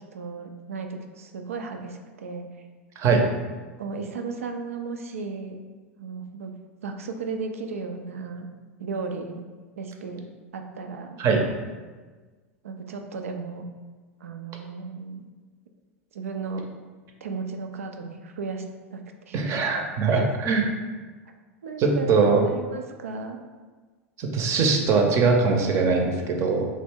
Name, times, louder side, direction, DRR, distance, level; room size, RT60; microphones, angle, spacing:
voice 1, 0.0-2.5 3.8-5.6 6.0-6.5 6.8-8.5 8.8-9.4 9.8-10.3 10.5-11.2 12.6-13.6 14.2-15.3 16.1-16.6 17.2-18.6 18.9-19.0 19.3-19.6 20.1-20.3 21.6-22.1 22.4-23.4, right 4 dB, 80° right, 5 dB, 0.4 m, -35 dB
voice 2, 19.3-20.6 21.8-22.4 24.2-26.7, right 4 dB, 40° right, 2 dB, 0.6 m, -21 dB
3.1 x 2.6 x 3.4 m, 1.4 s
hypercardioid pair, 90°, 7 cm